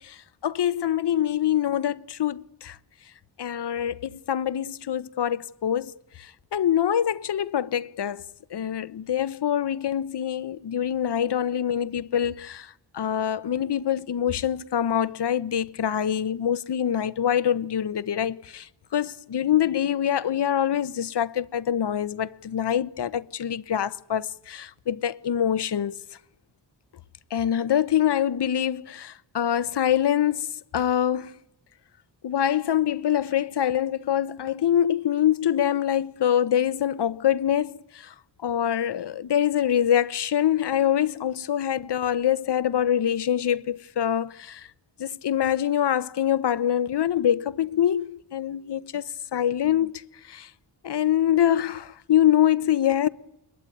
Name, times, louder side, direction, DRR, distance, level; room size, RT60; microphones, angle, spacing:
voice 1, 0.0-2.8 3.4-26.0 27.3-30.5 30.7-31.3 32.2-38.1 38.4-44.7 45.0-49.0 49.3-50.5 50.8-53.1, left 10 dB, 65° left, 0.8 m, -25 dB
22.0 x 21.0 x 9.3 m
wide cardioid pair, 130°, 45 cm